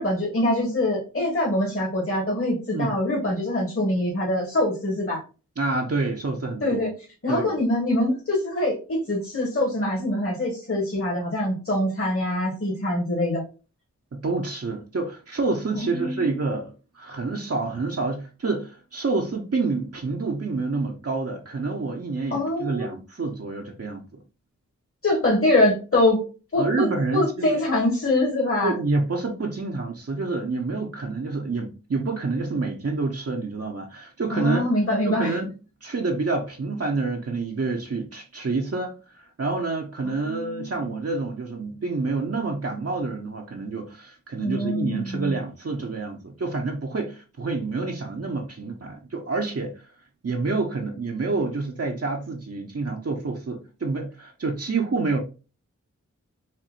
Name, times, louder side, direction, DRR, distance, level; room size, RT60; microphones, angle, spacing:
voice 1, 0.0-5.2 6.6-6.9 7.2-13.4 15.7-16.3 22.3-22.9 25.0-26.2 26.5-28.7 34.3-35.3 40.0-40.8 44.4-45.3, left 1 dB, 45° left, 1.7 m, -24 dB
voice 2, 5.6-6.9 7.3-7.5 14.1-24.0 26.5-27.6 28.6-34.7 35.0-35.5 35.8-49.7 50.2-55.2, right 3 dB, 50° right, 0.9 m, -28 dB
4.4 x 2.6 x 2.5 m
cardioid pair, 40°, 30 cm